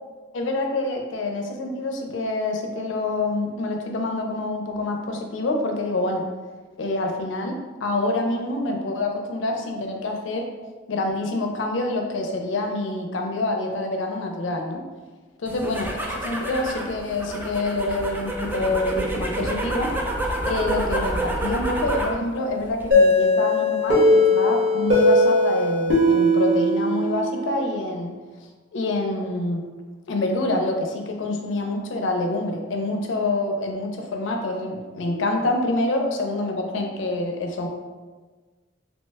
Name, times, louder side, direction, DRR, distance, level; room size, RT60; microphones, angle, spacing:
voice 1, 0.3-6.3 6.8-10.4 10.9-14.8 15.4-19.9 20.4-28.2 28.7-29.6 30.1-37.7, left 2 dB, 90° left, 3 dB, 0.4 m, -26 dB
sound 1, 15.5-22.2 22.6-23.1, right 1 dB, 10° right, 0.3 m, -28 dB
sound 2, 22.9-27.6, left 1 dB, 90° right, 0.8 m, -19 dB
2.9 x 2.1 x 3.3 m, 1.4 s
head